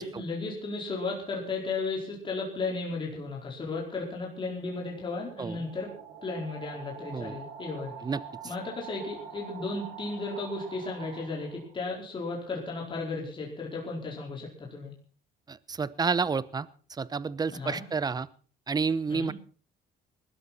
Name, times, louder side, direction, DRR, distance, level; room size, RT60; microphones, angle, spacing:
voice 1, 0.0-5.9 6.2-7.9 8.4-14.9 17.5-17.8 19.1-19.3, left 3 dB, 30° left, -2 dB, 4.6 m, -34 dB
sound 1, 4.1-11.8, right 6 dB, 75° right, 5.0 m, -46 dB
voice 2, 15.5-18.3 18.7-19.3, right 5 dB, 25° right, 19 dB, 0.8 m, -30 dB
20.0 x 13.0 x 4.3 m, 0.40 s
cardioid pair, 110°, 17 cm